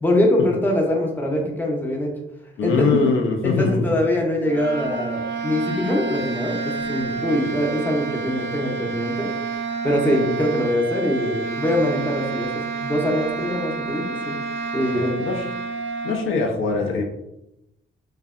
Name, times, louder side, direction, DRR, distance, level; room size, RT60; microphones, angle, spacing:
voice 1, 0.0-2.1 2.6-3.0 3.4-9.3 9.8-14.4 14.7-15.2, left 1 dB, 10° left, 0 dB, 0.5 m, -23 dB
voice 2, 2.6-4.0 14.9-15.5 16.0-17.0, left 4 dB, 80° left, 3 dB, 0.4 m, -22 dB
sound 1, 4.4-16.2, right 4 dB, 65° right, 0.4 m, -29 dB
2.6 x 2.1 x 2.3 m, 0.85 s
cardioid pair, 90°, 20 cm